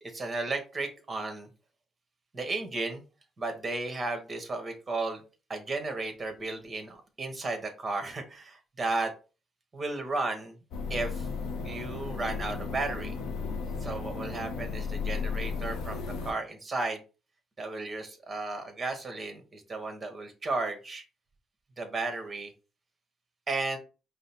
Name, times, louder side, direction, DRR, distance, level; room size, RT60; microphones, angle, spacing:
voice 1, 0.0-1.5 2.3-3.0 3.4-5.2 5.5-9.1 9.7-10.6 10.9-11.3 11.6-13.2 13.8-17.0 17.6-21.0 21.8-22.5 23.5-23.8, right 3 dB, 30° right, 5 dB, 1.4 m, -34 dB
sound 1, 10.7-16.3, left 4 dB, 90° left, 0.9 m, -34 dB
5.0 x 2.1 x 4.3 m, 0.33 s
cardioid pair, 90°, 0 cm